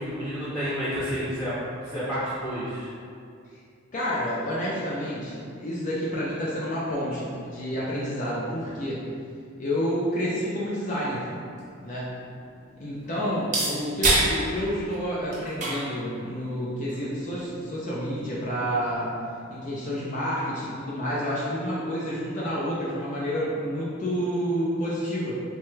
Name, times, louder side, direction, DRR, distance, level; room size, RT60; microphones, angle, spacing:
voice 1, 0.0-1.6 1.8-2.9, equal, ahead, -13 dB, 0.9 m, -30 dB
voice 2, 3.9-9.0 9.6-11.3 11.8-12.1 12.8-19.1 19.5-25.3, equal, 35° left, -7 dB, 0.4 m, -29 dB
sound 1, 11.1-19.0, right 2 dB, 35° right, 0.7 m, -31 dB
3.2 x 2.2 x 3.0 m, 2.3 s
head